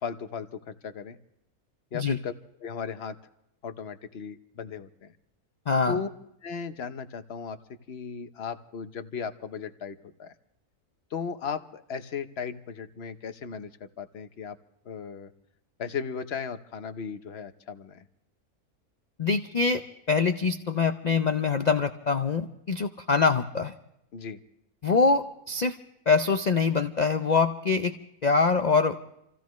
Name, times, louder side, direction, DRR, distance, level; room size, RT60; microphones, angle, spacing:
voice 1, 0.0-1.2 1.9-2.3 2.6-3.2 3.6-5.1 5.9-6.1 6.4-7.6 7.9-10.3 11.1-14.6 14.9-15.3 15.8-18.0 24.1-24.4, left 6 dB, 50° left, 9 dB, 0.9 m, -36 dB
voice 2, 5.7-6.0 19.2-23.7 24.8-25.8 26.1-27.9 28.2-29.0, left 4 dB, 70° left, 7 dB, 0.4 m, -24 dB
28.0 x 15.5 x 3.1 m, 0.79 s
omnidirectional pair, 1.6 m